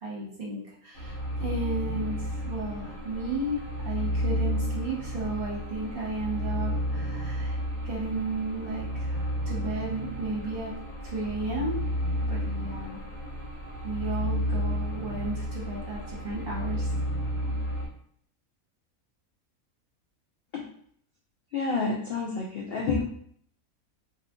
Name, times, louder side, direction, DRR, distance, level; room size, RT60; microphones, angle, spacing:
voice 1, 0.0-10.7 11.0-11.8 12.2-13.0 13.8-16.9, right 2 dB, 45° right, -5 dB, 1.1 m, -34 dB
sound 1, 0.9-17.9, equal, 40° left, 1.3 m, -32 dB
voice 2, 21.5-23.0, left 4 dB, 70° left, -1 dB, 0.6 m, -29 dB
2.6 x 2.4 x 3.6 m, 0.63 s
omnidirectional pair, 1.5 m